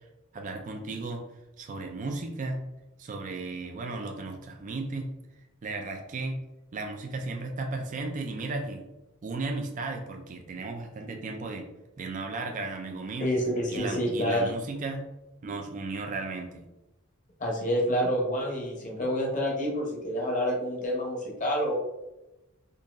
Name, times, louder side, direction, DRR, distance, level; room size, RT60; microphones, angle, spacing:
voice 1, 0.3-1.2 1.6-2.6 3.0-5.1 5.6-6.4 6.7-8.8 9.2-11.7 12.0-13.3 13.7-15.1 15.4-16.6, right 3 dB, 35° right, 3 dB, 0.3 m, -35 dB
voice 2, 13.2-14.5 17.4-21.7, equal, 35° left, 0 dB, 0.9 m, -28 dB
3.8 x 2.7 x 2.5 m, 0.96 s
head